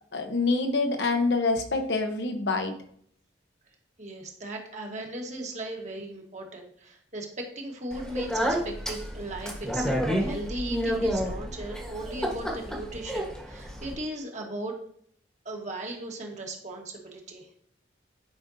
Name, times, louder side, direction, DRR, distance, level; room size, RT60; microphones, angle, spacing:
voice 1, 0.1-2.7, left 3 dB, 70° left, 5 dB, 1.0 m, -26 dB
voice 2, 4.0-14.8 15.4-17.5, right 1 dB, 40° right, 1 dB, 1.4 m, -37 dB
Speech, 7.9-14.0, equal, 5° left, 1.3 m, -30 dB
11.0 x 5.2 x 2.7 m, 0.64 s
head